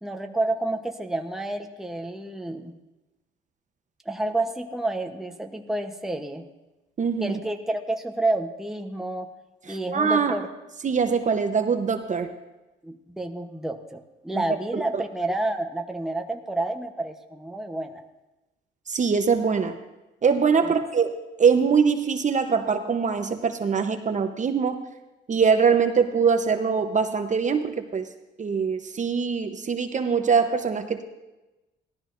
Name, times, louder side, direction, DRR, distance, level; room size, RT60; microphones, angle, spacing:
voice 1, 0.0-2.7 4.1-6.4 7.2-9.3 9.7-10.5 12.8-18.0, right 2 dB, ahead, 4 dB, 0.9 m, -29 dB
voice 2, 7.0-7.4 9.7-10.3 10.8-12.3 14.7-15.0 18.9-19.8 20.2-21.1 21.4-24.8 25.3-28.0 28.4-31.0, right 6 dB, 40° right, 6 dB, 0.9 m, -23 dB
17.0 x 13.0 x 2.6 m, 1.1 s
cardioid pair, 90°, 20 cm